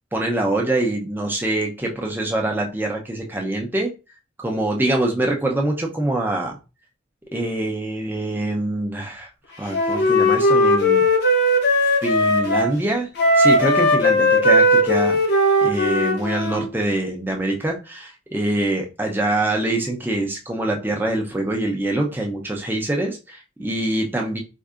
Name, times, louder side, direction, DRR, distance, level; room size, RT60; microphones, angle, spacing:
voice 1, 0.1-3.9 4.4-6.6 7.3-9.3 9.6-11.1 11.8-13.1 13.4-15.2 15.6-24.4, right 1 dB, 10° right, 0 dB, 0.6 m, -24 dB
Wind instrument woodwind instrument, 9.7-12.7 13.2-16.6, left 1 dB, 60° left, 0.8 m, -18 dB
4.4 x 2.7 x 2.4 m, 0.30 s
head